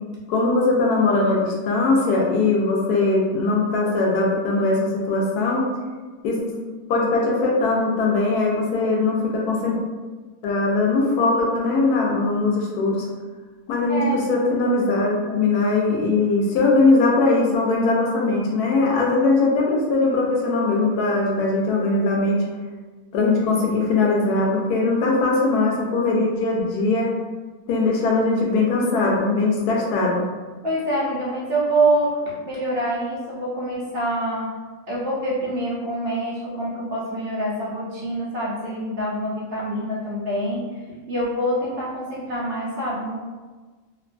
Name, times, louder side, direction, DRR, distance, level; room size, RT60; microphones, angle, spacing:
voice 1, 0.3-5.6 6.2-6.6 6.9-9.7 10.4-13.1 13.7-22.4 23.1-27.1 27.7-30.2, left 3 dB, 90° left, -2 dB, 1.2 m, -20 dB
voice 2, 13.9-14.3 30.6-34.6 34.9-43.2, right 1 dB, 65° right, -6 dB, 0.6 m, -25 dB
2.9 x 2.2 x 2.4 m, 1.4 s
omnidirectional pair, 1.6 m